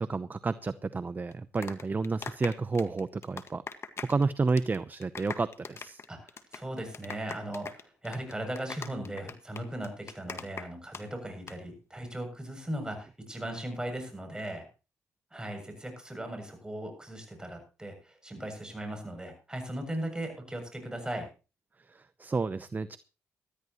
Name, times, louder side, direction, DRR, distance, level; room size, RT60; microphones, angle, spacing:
voice 1, 0.0-3.6 4.0-6.0 21.8-23.0, right 4 dB, 30° right, 14 dB, 0.7 m, -31 dB
sound 1, 1.3-4.2 4.5-4.8 5.0-11.0 11.3-11.5, left 5 dB, 50° left, 1.7 m, -41 dB
voice 2, 6.1-14.7 15.3-21.3, right 1 dB, 15° right, 4 dB, 7.4 m, -38 dB
19.5 x 13.0 x 3.0 m, 0.33 s
cardioid pair, 65°, 6 cm